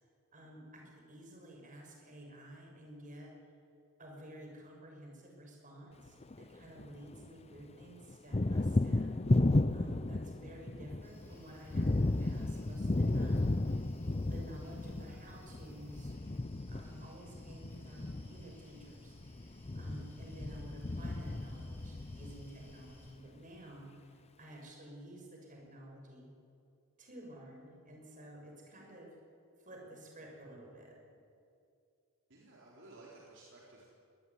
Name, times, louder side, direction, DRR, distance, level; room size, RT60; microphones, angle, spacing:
voice 1, 0.3-3.3 4.0-9.1 9.7-13.5 14.2-16.2 16.7-19.2 19.7-26.3 27.0-29.1 29.6-31.0, right 1 dB, 35° right, 0 dB, 6.6 m, -52 dB
Thunder, 6.1-7.3 7.6-22.8, left 2 dB, 30° left, 0.6 m, -34 dB
sound 1, 11.0-23.1, left 1 dB, 10° left, 5.1 m, -59 dB
voice 2, 32.3-33.8, right 2 dB, 55° right, -4 dB, 4.4 m, -55 dB
24.0 x 19.0 x 9.8 m, 2.4 s
head